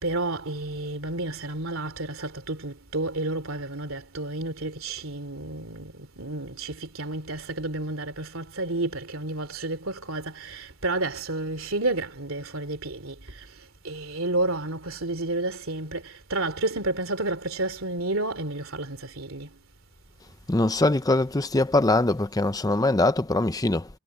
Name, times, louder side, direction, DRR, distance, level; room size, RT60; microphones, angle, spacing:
voice 1, 0.0-13.2 13.8-19.5, right 2 dB, 70° right, 3.3 m, -31 dB
voice 2, 20.5-23.9, left 2 dB, 15° left, 0.7 m, -22 dB
head